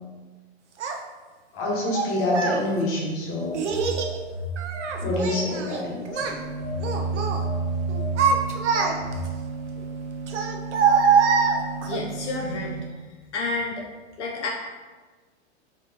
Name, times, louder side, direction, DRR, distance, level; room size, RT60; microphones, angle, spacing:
Child speech kid speaking, 0.8-1.0 1.9-2.6 3.5-4.1 4.6-5.8 6.1-6.4 6.8-7.4 7.9-9.3 10.3-12.0, right 6 dB, 85° right, 0.6 m, -23 dB
voice 1, 1.5-3.6 5.0-6.3, left 1 dB, 40° left, -3 dB, 1.3 m, -26 dB
Telephone, 3.4-5.7 6.1-9.2, right 2 dB, ahead, 0.7 m, -31 dB
sound 1, 6.2-12.8, right 4 dB, 20° right, 1.0 m, -35 dB
voice 2, 11.9-12.8 13.3-13.9 14.2-14.5, left 3 dB, 85° left, -2 dB, 0.7 m, -29 dB
4.2 x 2.7 x 2.8 m, 1.3 s
hypercardioid pair, 105°, 34 cm